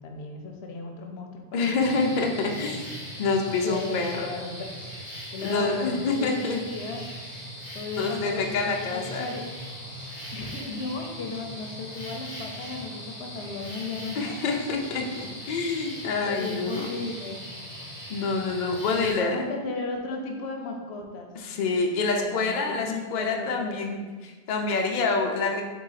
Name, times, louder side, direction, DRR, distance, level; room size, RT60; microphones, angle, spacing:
voice 1, 0.0-2.8 3.4-5.0 5.3-6.4 6.7-7.1 7.7-9.5 10.3-14.6 16.2-17.4 18.9-21.3 22.1-24.0, left 3 dB, 75° left, 2 dB, 0.9 m, -35 dB
voice 2, 1.5-2.9 3.2-4.3 5.4-6.6 8.0-9.2 14.2-16.9 18.1-19.4 21.4-25.6, left 4 dB, 55° left, 2 dB, 0.5 m, -27 dB
sound 1, 1.8-19.1, equal, 15° left, 1.1 m, -40 dB
3.8 x 2.7 x 4.0 m, 1.4 s
omnidirectional pair, 1.1 m